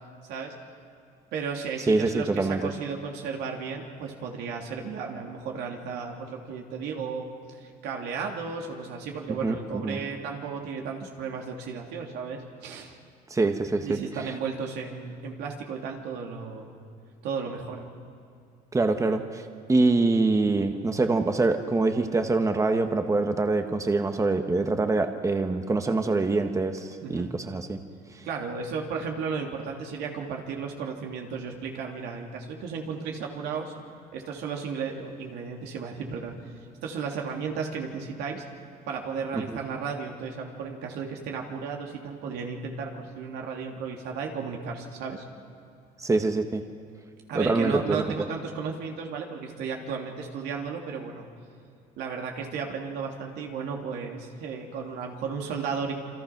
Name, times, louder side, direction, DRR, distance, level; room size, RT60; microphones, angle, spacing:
voice 1, 1.3-13.0 13.8-16.7 17.2-17.9 27.0-27.3 28.2-33.7 34.1-36.4 36.8-38.4 38.9-45.2 47.3-51.3 52.0-55.9, right 5 dB, 85° right, 1 dB, 3.2 m, -34 dB
voice 2, 1.9-2.6 9.4-9.6 9.8-10.0 13.3-14.0 18.7-19.4 19.7-27.8 46.0-46.6 47.3-48.0, right 3 dB, 20° right, 6 dB, 1.4 m, -24 dB
28.0 x 24.5 x 6.1 m, 2.4 s
cardioid pair, 110°, 17 cm